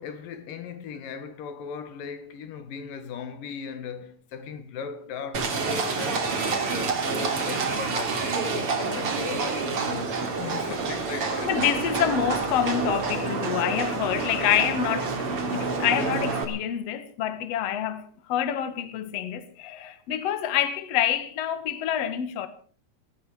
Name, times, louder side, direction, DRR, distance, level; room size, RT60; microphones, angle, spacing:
voice 1, 0.0-11.5, left 6 dB, 85° left, 3.2 m, -38 dB
Livestock farm animals working animals, 5.3-16.4, right 4 dB, 45° right, 3.3 m, -28 dB
voice 2, 11.4-15.2 15.5-22.5, left 10 dB, 55° left, 2.3 m, -27 dB
18.0 x 15.5 x 4.9 m
omnidirectional pair, 3.8 m